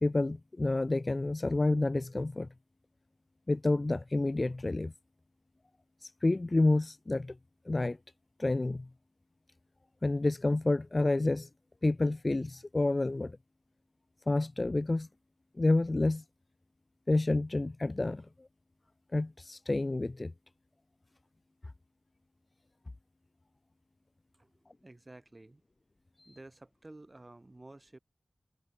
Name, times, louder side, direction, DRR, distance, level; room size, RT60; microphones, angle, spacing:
voice 1, 0.0-2.5 3.5-4.9 6.0-7.4 7.6-8.0 8.4-8.9 10.0-11.5 11.8-13.4 14.3-15.1 15.6-16.2 17.1-18.5 19.1-20.3 26.2-26.4, left 2 dB, 45° left, 0.7 m, -29 dB
voice 2, 24.8-25.6 26.3-28.0, right 2 dB, 35° right, 5.8 m, -52 dB
wide cardioid pair, 60°, 0 cm